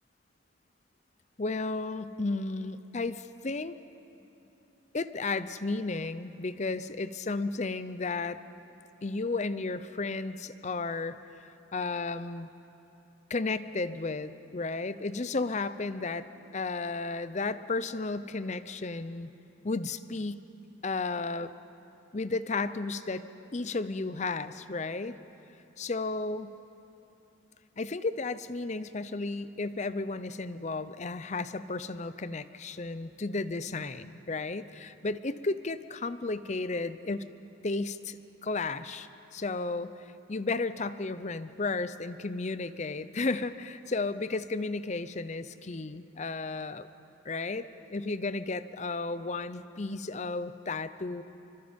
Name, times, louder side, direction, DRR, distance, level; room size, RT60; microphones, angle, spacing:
voice 1, 1.4-3.7 4.9-8.4 9.0-11.2 11.7-12.5 13.3-16.3 16.5-19.3 19.6-20.4 20.8-21.5 22.1-23.2 23.5-25.2 25.8-26.5 27.8-37.2 37.6-38.2 38.4-39.9 40.3-46.9 47.3-51.2, left 3 dB, 35° left, 13 dB, 0.6 m, -33 dB
27.5 x 24.5 x 5.2 m, 2.9 s
head